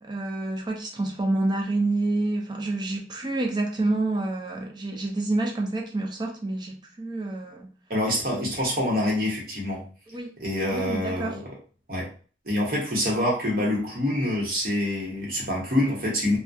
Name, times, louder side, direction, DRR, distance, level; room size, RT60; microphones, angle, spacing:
voice 1, 0.0-7.7 10.1-10.3 10.7-11.4, right 2 dB, 25° right, 2 dB, 0.3 m, -28 dB
voice 2, 7.9-9.8 10.4-11.4 11.9-12.1 12.4-16.4, left 1 dB, 50° right, -3 dB, 0.9 m, -26 dB
2.6 x 2.2 x 2.2 m, 0.39 s
head